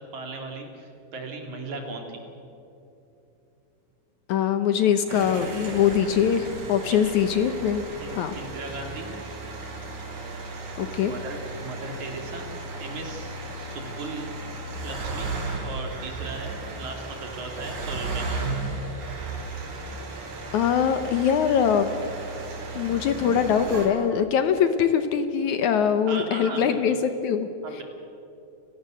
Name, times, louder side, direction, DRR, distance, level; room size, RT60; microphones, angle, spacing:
voice 1, 0.1-2.2 6.9-7.2 8.0-9.1 11.0-12.5 12.8-14.3 14.8-15.3 15.6-18.6 26.1-27.0 27.6-27.8, right 3 dB, 60° right, 3 dB, 3.9 m, -37 dB
voice 2, 4.3-7.8 8.1-8.4 10.8-11.1 20.5-21.9 22.8-27.5 27.7-27.8, left 8 dB, 70° left, 9 dB, 2.1 m, -22 dB
sound 1, 5.1-23.9, right 3 dB, 75° right, 5.0 m, -35 dB
29.5 x 17.0 x 7.7 m, 2.8 s
omnidirectional pair, 4.0 m